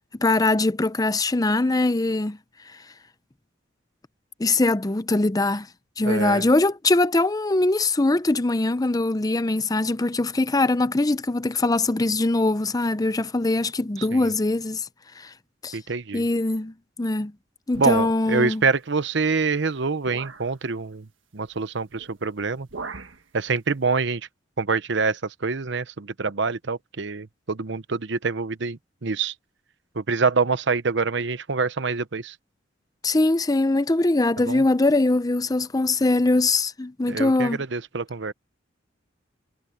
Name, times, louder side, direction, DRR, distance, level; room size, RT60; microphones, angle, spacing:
voice 1, 0.2-2.4 4.4-5.7 6.0-14.9 15.2-15.3 15.6-15.8 16.1-17.3 17.7-18.6 33.0-37.6, left 2 dB, 20° left, 0.6 m, -22 dB
voice 2, 6.0-6.5 14.1-14.2 15.7-16.2 17.8-21.1 21.3-22.7 23.3-24.2 24.6-29.3 30.0-32.3 34.5-34.6 37.1-38.3, right 4 dB, 65° right, 0.9 m, -26 dB
sound 1, 17.7-18.5 19.4-19.5 20.0-20.5 21.9-22.1 22.4-23.2, right 3 dB, 85° right, 1.6 m, -38 dB
head